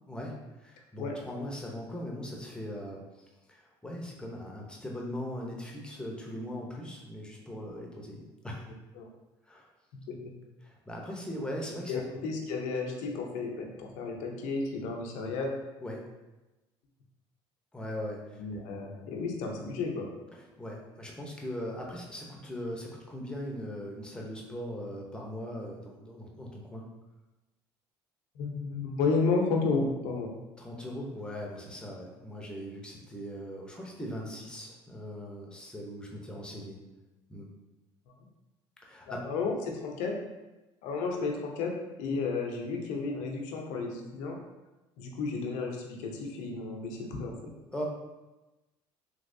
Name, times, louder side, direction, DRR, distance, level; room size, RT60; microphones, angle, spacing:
voice 1, 0.1-8.7 9.5-9.7 10.6-12.0 15.8-16.1 17.7-18.4 20.3-26.9 30.6-36.8 37.3-37.5 38.8-39.2 47.7-47.8, equal, 5° left, -1 dB, 0.8 m, -40 dB
voice 2, 11.9-15.6 18.4-20.1 28.4-30.3 39.1-40.2 40.8-41.7 42.0-44.4 45.0-47.5, left 4 dB, 80° left, 1 dB, 0.7 m, -32 dB
3.3 x 2.9 x 2.6 m, 1.1 s
supercardioid pair, 85°, 12 cm